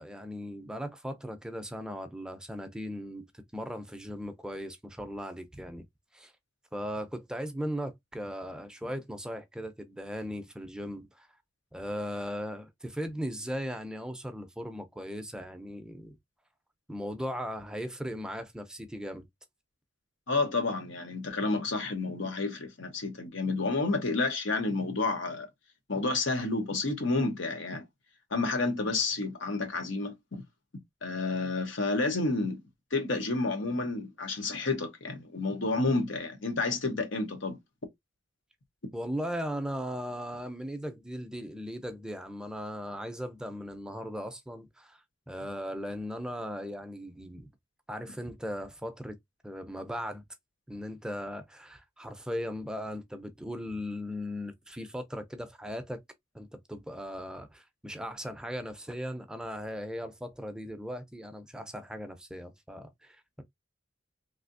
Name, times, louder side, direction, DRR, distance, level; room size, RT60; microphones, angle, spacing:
voice 1, 0.0-5.8 6.1-6.3 6.7-11.3 11.7-16.2 16.9-19.3 38.9-45.0 45.3-47.5 47.9-49.2 49.4-50.2 50.7-56.0 56.3-63.4, equal, 5° right, 0.4 m, -38 dB
voice 2, 20.3-25.5 25.9-27.8 28.3-30.4 31.0-32.6 32.9-37.6, left 3 dB, 85° left, 1.0 m, -30 dB
3.3 x 2.7 x 2.5 m
head